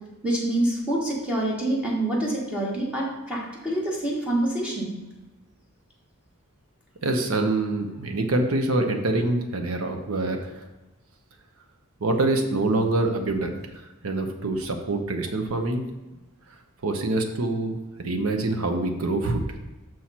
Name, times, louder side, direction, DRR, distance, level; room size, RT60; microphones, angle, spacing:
voice 1, 0.2-4.9, right 1 dB, 5° right, -4 dB, 1.3 m, -26 dB
voice 2, 7.0-10.5 12.0-13.5 14.0-15.8 16.8-19.4, right 2 dB, 75° right, 4 dB, 0.8 m, -25 dB
6.3 x 6.0 x 4.2 m, 1.1 s
head